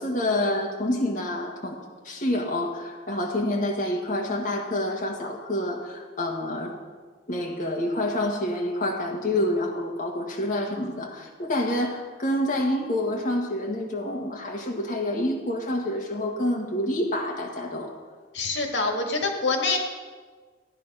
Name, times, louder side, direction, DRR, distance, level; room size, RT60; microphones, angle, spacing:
voice 1, 0.0-1.8 2.0-6.7 7.3-17.9, left 1 dB, 45° left, -1 dB, 1.6 m, -27 dB
voice 2, 18.3-19.8, left 3 dB, 85° left, 2 dB, 2.1 m, -25 dB
16.0 x 10.5 x 5.6 m, 1.5 s
head